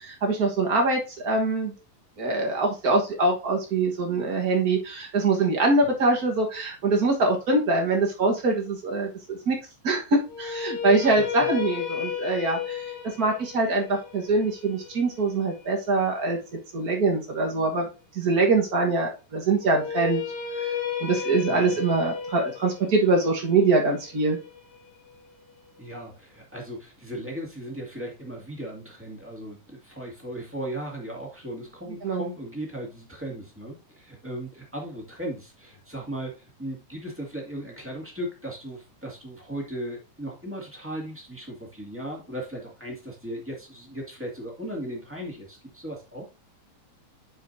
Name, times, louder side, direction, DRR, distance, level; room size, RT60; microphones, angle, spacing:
voice 1, 0.0-1.7 2.2-9.6 9.8-16.4 16.7-17.9 18.1-20.2 20.6-20.7 21.0-24.4 32.0-32.2, right 3 dB, 55° right, 1 dB, 1.0 m, -24 dB
sound 1, 10.3-16.4 19.6-25.7, left 7 dB, 85° left, 4.0 m, -34 dB
voice 2, 11.0-11.5 21.5-21.8 25.8-46.3, right 1 dB, 5° right, -2 dB, 1.2 m, -37 dB
11.0 x 4.8 x 2.7 m, 0.31 s
omnidirectional pair, 3.8 m